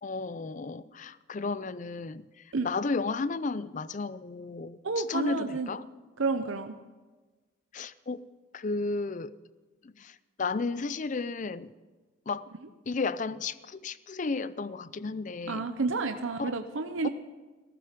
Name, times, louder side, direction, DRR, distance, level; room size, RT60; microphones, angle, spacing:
voice 1, 0.0-2.3 2.6-5.8 7.7-8.2 8.5-9.3 9.8-11.7 12.3-12.4 12.9-15.7 16.4-16.6 17.0-17.1, left 4 dB, 40° left, 16 dB, 0.5 m, -33 dB
voice 2, 4.8-5.7 6.2-6.7 15.5-17.1, right 3 dB, 80° right, 7 dB, 0.7 m, -30 dB
16.0 x 14.0 x 5.2 m, 1.3 s
head